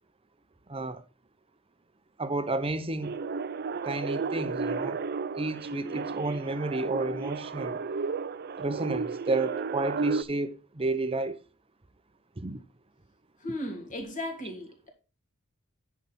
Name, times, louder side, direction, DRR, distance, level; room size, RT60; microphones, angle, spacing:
voice 1, 0.7-1.0 2.2-3.2 3.8-5.0 5.3-7.8 8.6-11.4 12.4-12.6, right 2 dB, 25° right, 0.8 m, -31 dB
sound 1, 3.0-10.2, right 4 dB, 50° right, 0.5 m, -33 dB
voice 2, 13.4-14.9, left 1 dB, 40° left, 3.0 m, -36 dB
10.0 x 5.9 x 4.2 m
head